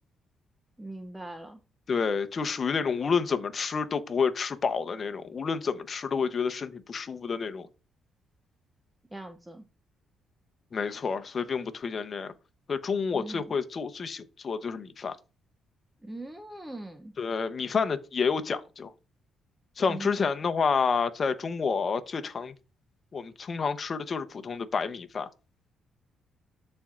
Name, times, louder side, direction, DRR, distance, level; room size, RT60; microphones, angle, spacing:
voice 1, 0.8-1.6 9.1-9.6 13.1-13.4 16.0-17.1 19.9-20.1, right 2 dB, 10° right, 0.7 m, -40 dB
voice 2, 1.9-7.7 10.7-12.3 12.7-15.2 17.2-18.9 19.8-22.5 23.1-25.3, left 5 dB, 40° left, 0.8 m, -29 dB
13.0 x 4.4 x 2.5 m
cardioid pair, 90°, 0 cm